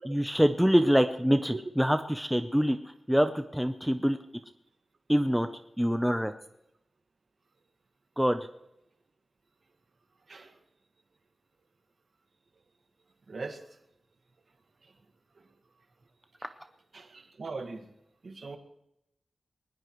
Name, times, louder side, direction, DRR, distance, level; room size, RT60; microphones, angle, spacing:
voice 1, 0.1-2.8 3.1-4.2 5.1-5.5 5.8-6.3 8.2-8.4, equal, ahead, 8 dB, 0.6 m, -25 dB
voice 2, 1.3-1.6 10.3-10.6 13.3-13.6 14.8-14.9 16.4-16.5 16.9-17.9 18.2-18.6, right 3 dB, 60° right, 6 dB, 1.7 m, -40 dB
21.0 x 19.0 x 3.1 m, 0.83 s
wide cardioid pair, 125°, 0 cm